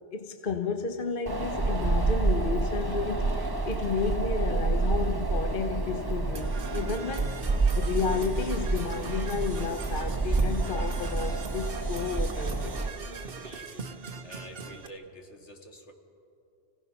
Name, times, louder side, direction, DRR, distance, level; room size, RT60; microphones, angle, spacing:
voice 1, 0.1-12.8, left 5 dB, 50° left, 6 dB, 1.0 m, -32 dB
Wind, 1.3-12.9, right 3 dB, 20° right, 1.1 m, -28 dB
Percussion / Brass instrument, 6.3-14.9, right 5 dB, 55° right, 1.3 m, -41 dB
voice 2, 13.3-15.9, equal, 70° left, 2 dB, 2.3 m, -48 dB
30.0 x 17.5 x 5.8 m, 2.7 s
omnidirectional pair, 1.2 m